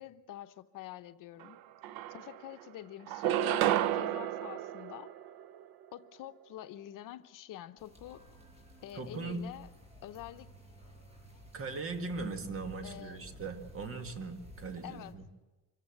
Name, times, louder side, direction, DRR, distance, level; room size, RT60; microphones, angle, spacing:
voice 1, 0.0-1.6 2.1-5.1 5.9-8.2 8.8-9.7 10.0-10.5 12.8-13.2 14.8-15.1, left 13 dB, 65° left, 0.9 m, -47 dB
sound 1, 1.4-1.5 1.8-2.6 3.1-5.7, right 12 dB, 85° right, 0.8 m, -32 dB
sound 2, 7.8-15.1, equal, 20° right, 5.9 m, -54 dB
voice 2, 8.9-9.5 11.5-15.2, right 3 dB, 40° right, 2.0 m, -39 dB
25.5 x 14.5 x 7.8 m
cardioid pair, 140°, 35 cm